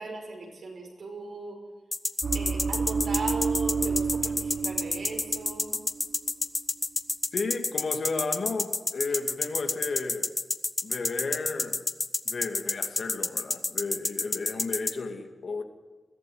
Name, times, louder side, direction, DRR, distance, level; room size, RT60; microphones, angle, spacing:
voice 1, 0.0-1.6 2.3-5.8, right 3 dB, 75° right, 5.9 m, -38 dB
sound 1, 1.9-14.9, left 3 dB, 30° left, 0.9 m, -28 dB
sound 2, 2.2-5.7 6.0-6.3, right 5 dB, 55° right, 0.8 m, -30 dB
voice 2, 7.3-10.3 10.8-11.9 12.2-15.6, left 4 dB, 65° left, 2.4 m, -33 dB
21.5 x 16.5 x 9.4 m
wide cardioid pair, 140°, 0 cm